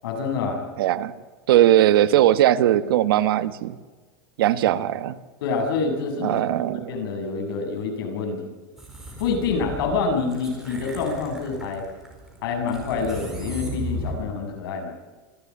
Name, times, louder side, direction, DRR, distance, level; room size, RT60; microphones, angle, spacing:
voice 1, 0.0-0.6 5.4-8.4 9.2-11.8 12.4-14.9, left 4 dB, 75° left, 3 dB, 6.9 m, -27 dB
voice 2, 0.8-1.1 1.5-3.8 4.4-5.2 6.2-6.9, right 12 dB, 75° right, 12 dB, 1.3 m, -19 dB
sound 1, 8.8-14.1, equal, 5° right, 4.7 m, -36 dB
26.5 x 13.5 x 8.5 m, 1.4 s
supercardioid pair, 180°, 12 cm